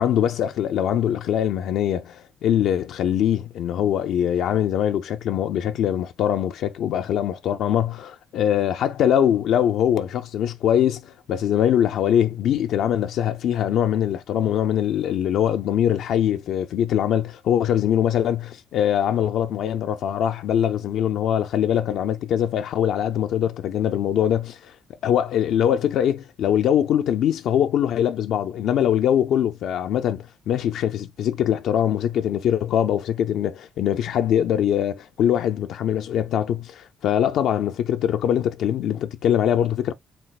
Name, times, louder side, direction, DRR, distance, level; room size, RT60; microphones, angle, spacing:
voice 1, 0.0-24.7 25.0-39.9, left 10 dB, 80° left, 0.5 m, -22 dB
4.4 x 2.1 x 4.0 m
cardioid pair, 90°, 0 cm